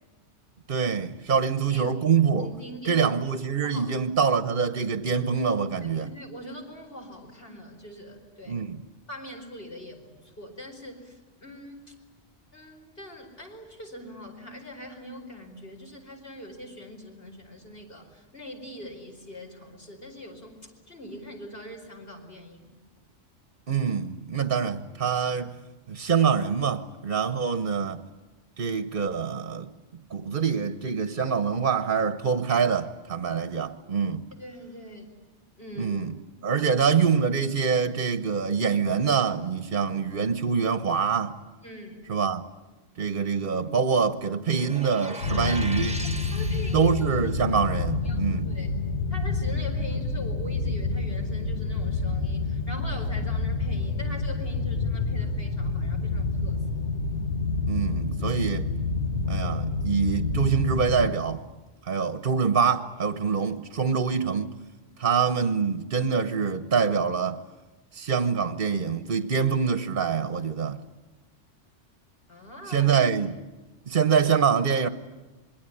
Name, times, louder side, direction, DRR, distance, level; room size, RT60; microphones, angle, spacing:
voice 1, 0.7-2.5 2.8-6.1 8.5-8.8 23.7-25.6 25.9-28.0 28.6-29.7 30.1-34.3 35.8-36.1 36.4-41.4 42.1-42.4 43.0-46.0 46.7-48.5 57.7-58.7 59.3-61.5 61.8-64.5 65.0-67.4 67.9-70.8 72.7-73.3 73.9-74.9, right 6 dB, 45° right, 1.2 m, -25 dB
voice 2, 1.4-1.9 2.4-3.2 3.6-3.9 5.8-8.6 9.1-11.9 12.5-22.8 34.3-35.1 35.6-36.0 36.6-36.7 41.6-42.2 45.4-45.6 46.3-46.9 47.4-48.7 49.1-56.8 72.3-73.0, equal, 50° left, 5.2 m, -43 dB
sound 1, 44.5-47.3, right 1 dB, 5° right, 1.3 m, -39 dB
sound 2, 45.2-61.1, left 3 dB, 70° left, 1.9 m, -28 dB
26.5 x 22.0 x 10.0 m
omnidirectional pair, 1.3 m